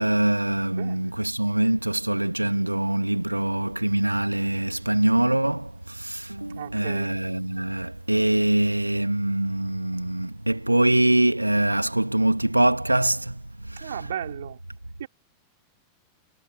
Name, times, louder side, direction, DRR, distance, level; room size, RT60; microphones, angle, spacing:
voice 1, 0.0-14.0, right 1 dB, 85° right, 2.6 m, -24 dB
voice 2, 0.7-1.1 6.5-7.2 13.8-14.6 15.0-15.1, right 10 dB, 60° right, 4.6 m, -35 dB
figure-of-eight pair, 90°, 0 cm